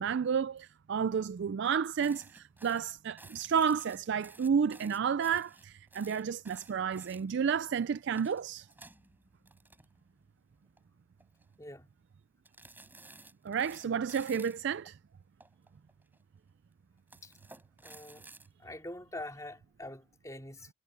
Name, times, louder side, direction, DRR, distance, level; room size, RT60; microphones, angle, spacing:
voice 1, 0.0-8.7 13.4-15.0, right 7 dB, 50° right, 0.3 m, -31 dB
sound 1, 2.0-7.5 8.0-10.3 10.6-10.8 11.2-11.6 12.4-14.7 15.4-16.2 17.0-18.5, right 2 dB, 10° right, 4.7 m, -55 dB
voice 2, 17.8-18.3 18.6-20.7, left 1 dB, 15° left, 3.5 m, -44 dB
head